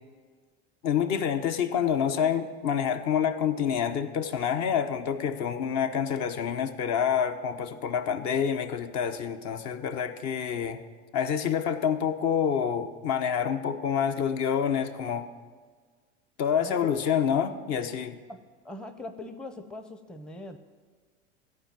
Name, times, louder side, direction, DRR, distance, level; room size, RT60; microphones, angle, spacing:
voice 1, 0.8-10.8 11.1-15.3 16.4-18.2, left 8 dB, 50° left, 8 dB, 1.0 m, -27 dB
voice 2, 18.3-20.7, left 2 dB, ahead, 7 dB, 0.7 m, -42 dB
14.0 x 4.8 x 8.9 m, 1.5 s
hypercardioid pair, 95°, 35 cm